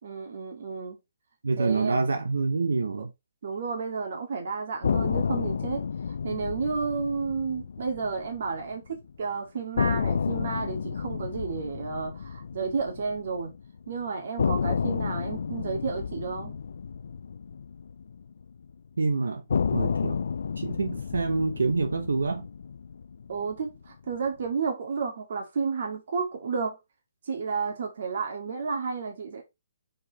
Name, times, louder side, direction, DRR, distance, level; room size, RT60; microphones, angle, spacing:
voice 1, 0.0-1.0 1.6-2.0 3.4-13.5 13.9-16.5 23.3-26.8 27.2-29.4, right 5 dB, 60° right, 2.0 m, -32 dB
voice 2, 1.4-3.1 19.0-19.4 19.7-20.2 20.6-22.5, right 4 dB, 90° right, 0.9 m, -26 dB
sound 1, 4.8-8.9 9.2-9.3 9.8-13.8 14.4-18.7 19.5-23.9, left 6 dB, 70° left, 0.3 m, -31 dB
5.2 x 4.9 x 4.1 m
hypercardioid pair, 155°, 0 cm